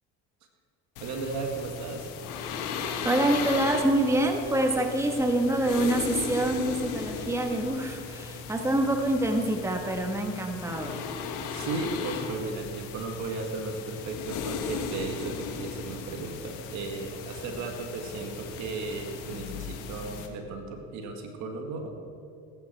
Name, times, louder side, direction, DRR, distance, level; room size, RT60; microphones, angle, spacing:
sound 1, 1.0-20.3, left 6 dB, 80° left, 1.5 m, -37 dB
voice 1, 1.0-2.1 11.5-21.9, right 3 dB, 65° right, 3 dB, 2.1 m, -35 dB
voice 2, 3.0-11.0, right 1 dB, 10° right, 3 dB, 1.4 m, -26 dB
18.5 x 9.6 x 4.6 m, 2.6 s
supercardioid pair, 95°, 31 cm